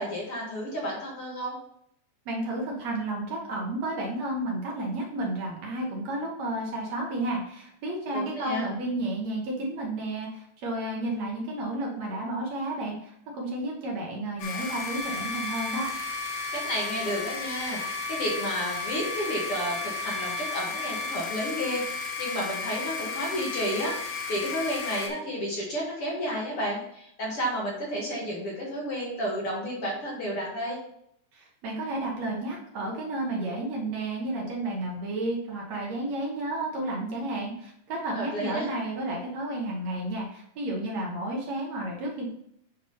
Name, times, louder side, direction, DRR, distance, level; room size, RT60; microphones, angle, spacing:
voice 1, 0.0-1.6 8.1-8.7 16.5-30.8 38.1-38.7, equal, 50° left, -3 dB, 2.1 m, -31 dB
voice 2, 2.3-15.9 31.3-42.3, right 1 dB, 60° right, -1 dB, 2.1 m, -32 dB
sound 1, 14.4-25.1, left 4 dB, 85° left, 3.2 m, -33 dB
8.4 x 3.7 x 5.4 m, 0.73 s
omnidirectional pair, 3.9 m